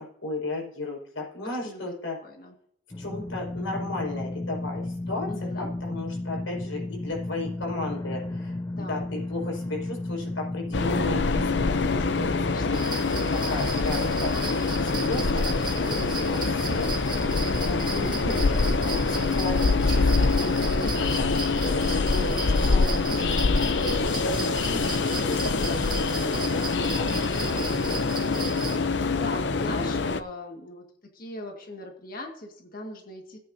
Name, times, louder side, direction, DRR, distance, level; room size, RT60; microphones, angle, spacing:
voice 1, 0.0-2.2 3.0-12.8 13.3-17.1 17.6-25.5 25.9-28.0, left 2 dB, 85° left, -1 dB, 5.7 m, -35 dB
voice 2, 1.4-1.9 2.2-2.5 5.3-5.7 8.7-9.1 12.2-12.8 17.9-18.4 25.4-25.9 29.1-30.8 31.1-33.4, left 2 dB, 45° left, 2 dB, 1.8 m, -40 dB
sound 1, 2.9-12.7, left 2 dB, 20° left, 0.4 m, -33 dB
Train, 10.7-30.2, left 3 dB, 60° left, 0.6 m, -25 dB
sound 2, 12.7-28.8, right 5 dB, 25° right, 1.3 m, -37 dB
16.5 x 9.0 x 2.7 m, 0.65 s
head